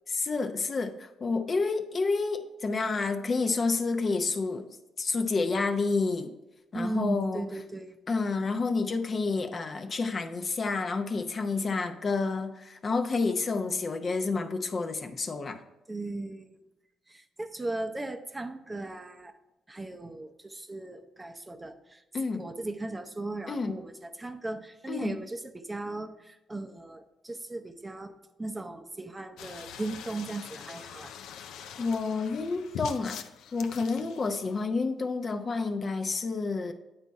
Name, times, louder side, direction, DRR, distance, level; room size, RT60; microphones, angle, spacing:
voice 1, 0.1-4.7 5.0-6.3 6.7-7.4 8.1-15.6 22.1-22.4 23.5-23.8 24.9-25.1 31.8-33.2 33.5-36.7, left 4 dB, 40° left, 6 dB, 0.6 m, -29 dB
voice 2, 6.7-8.0 15.9-16.6 17.1-19.3 19.7-22.0 22.3-28.1 28.4-31.1 34.0-34.1, right 2 dB, 20° right, 7 dB, 0.5 m, -37 dB
sound 1, 29.4-34.7, left 8 dB, 85° left, 0.4 m, -43 dB
8.8 x 4.1 x 4.6 m, 0.96 s
cardioid pair, 90°, 0 cm